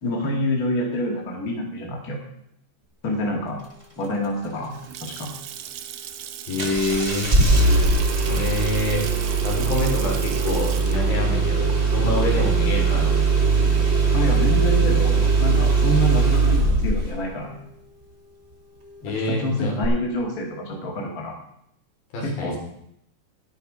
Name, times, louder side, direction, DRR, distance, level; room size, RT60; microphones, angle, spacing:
voice 1, 0.0-2.2 3.0-3.6 4.0-5.3 14.1-17.6 19.0-21.4 22.2-22.6, left 1 dB, 30° left, 0 dB, 2.1 m, -27 dB
Water tap faucet / Sink (filling or washing) / Splash splatter, 4.7-13.4, right 11 dB, 80° right, 2.2 m, -37 dB
voice 2, 6.5-7.7 8.2-9.0 9.4-13.2 19.0-19.7 22.1-22.6, left 2 dB, 75° left, -2 dB, 4.8 m, -27 dB
Engine starting, 6.6-17.2 19.8-19.9, right 4 dB, 25° right, 1.4 m, -20 dB
11.0 x 10.5 x 4.9 m, 0.73 s
omnidirectional pair, 4.1 m